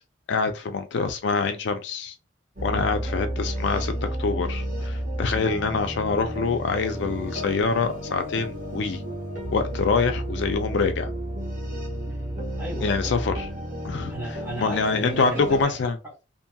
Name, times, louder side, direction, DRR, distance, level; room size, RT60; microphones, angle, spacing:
voice 1, 0.3-2.1 2.6-3.9 4.2-9.0 9.5-11.1 12.8-13.5 13.8-14.1 14.6-16.0, left 4 dB, 60° left, 0.4 m, -25 dB
sound 1, 2.6-15.6, equal, 40° right, 1.0 m, -32 dB
voice 2, 12.6-13.4 14.1-16.2, right 1 dB, 10° right, 1.0 m, -37 dB
2.7 x 2.6 x 2.2 m
head